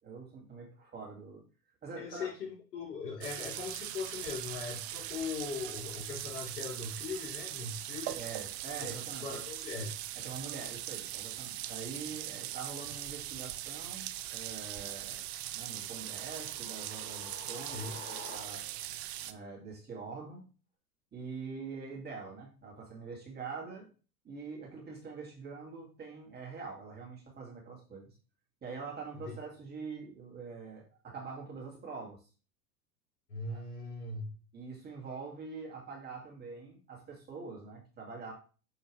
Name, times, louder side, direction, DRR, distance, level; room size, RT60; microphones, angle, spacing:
voice 1, 0.0-1.4 1.8-2.3 8.2-9.4 10.2-15.2 15.5-18.6 19.2-20.5 21.1-23.9 24.2-28.1 28.6-32.2 33.5-33.6 34.5-38.3, right 4 dB, 20° right, -2 dB, 2.5 m, -44 dB
voice 2, 2.0-8.2 9.2-10.0 17.7-18.0 29.2-29.3 33.3-34.3, left 4 dB, 70° left, -2 dB, 4.2 m, -40 dB
sound 1, 3.2-19.3, right 13 dB, 40° right, 0.6 m, -40 dB
sound 2, 15.7-18.9, left 2 dB, 20° left, 3.3 m, -50 dB
6.8 x 6.1 x 3.3 m, 0.36 s
hypercardioid pair, 105°, 48 cm